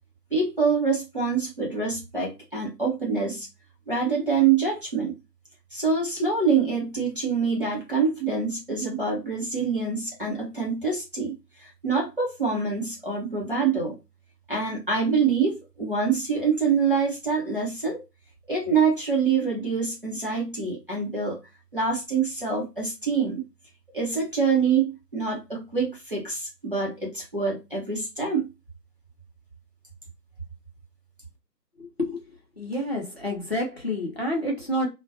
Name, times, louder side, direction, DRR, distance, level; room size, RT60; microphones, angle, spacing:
voice 1, 0.3-3.5 3.9-5.1 5.7-14.0 14.5-18.0 18.5-21.4 21.7-23.4 23.9-28.5, right 5 dB, 35° right, 0.7 m, -25 dB
voice 2, 31.8-32.2 32.6-34.9, left 1 dB, 40° left, 0.7 m, -28 dB
2.4 x 2.2 x 2.5 m
figure-of-eight pair, 155°, 50 cm